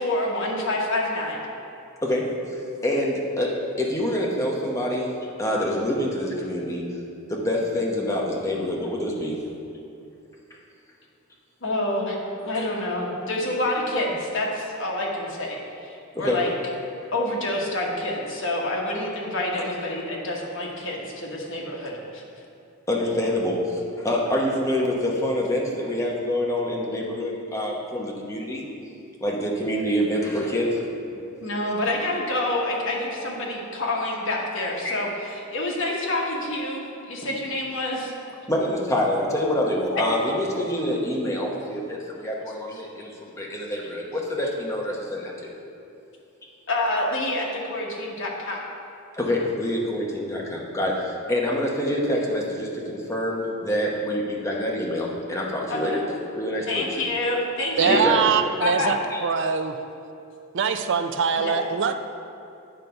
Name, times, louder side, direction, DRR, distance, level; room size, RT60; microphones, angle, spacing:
voice 1, 0.0-1.4 11.6-12.2 12.5-15.6 15.8-16.5 17.1-22.2 31.4-38.1 39.9-40.0 46.7-48.7 55.7-56.0 56.7-58.0 58.6-59.0 61.4-61.5, left 1 dB, 65° left, -2 dB, 1.3 m, -27 dB
voice 2, 2.0-5.1 5.4-6.9 7.3-9.4 12.5-12.6 16.1-16.4 22.9-28.7 29.2-30.8 34.6-35.0 37.2-37.3 38.5-45.5 49.2-56.1 56.3-56.9 57.8-58.2 59.1-59.2, left 1 dB, 15° left, -2 dB, 1.0 m, -26 dB
voice 3, 57.8-59.0 59.2-59.8 60.5-61.9, right 6 dB, 60° right, 8 dB, 0.4 m, -22 dB
9.0 x 4.0 x 5.7 m, 2.6 s
head